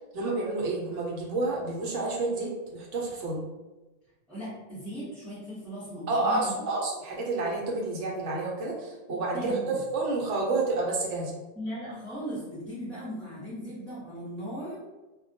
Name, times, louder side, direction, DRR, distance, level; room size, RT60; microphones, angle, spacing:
voice 1, 0.0-3.4 6.1-11.3, right 3 dB, 70° right, -2 dB, 0.9 m, -29 dB
voice 2, 4.3-6.6 9.1-9.8 11.5-14.8, equal, ahead, -11 dB, 0.6 m, -38 dB
2.2 x 2.1 x 2.6 m, 1.1 s
omnidirectional pair, 1.3 m